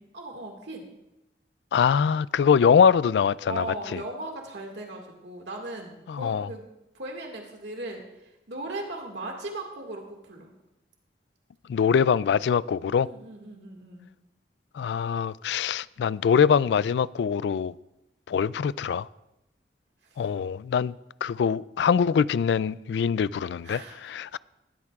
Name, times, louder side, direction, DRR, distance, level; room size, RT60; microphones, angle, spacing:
voice 1, 0.1-0.9 3.5-6.6 6.9-10.5 13.0-14.1 20.0-20.2 23.6-24.0, right 2 dB, 85° right, 1.9 m, -38 dB
voice 2, 1.7-3.7 3.9-4.0 6.1-6.5 11.7-13.1 14.7-17.7 18.3-19.1 20.2-20.9 21.2-24.4, left 7 dB, 80° left, 0.3 m, -23 dB
19.5 x 13.0 x 2.4 m
head